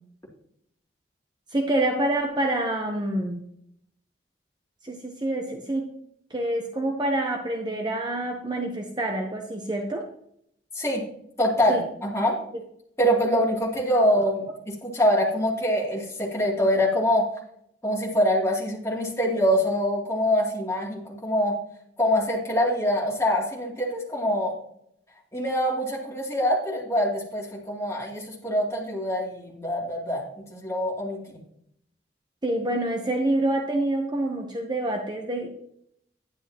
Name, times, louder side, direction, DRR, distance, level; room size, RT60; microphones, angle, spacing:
voice 1, 1.5-3.4 4.8-5.9 6.3-10.1 11.7-11.8 32.4-35.6, right 1 dB, 25° right, 2 dB, 0.8 m, -27 dB
voice 2, 11.4-12.4 13.0-17.3 17.8-21.6 22.0-24.5 25.3-31.4, equal, 15° left, -4 dB, 2.8 m, -24 dB
10.5 x 10.0 x 2.9 m, 0.72 s
head